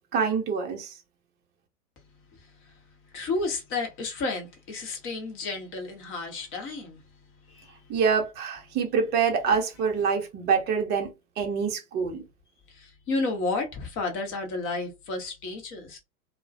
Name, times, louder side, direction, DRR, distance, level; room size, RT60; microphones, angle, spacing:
voice 1, 0.1-0.9 7.9-11.1 11.4-12.2, right 6 dB, 25° right, 0.7 m, -25 dB
voice 2, 3.1-7.0 7.5-7.7 12.7-16.0, left 3 dB, 30° left, 0.9 m, -32 dB
2.2 x 2.1 x 2.6 m
figure-of-eight pair, 105°, 45 cm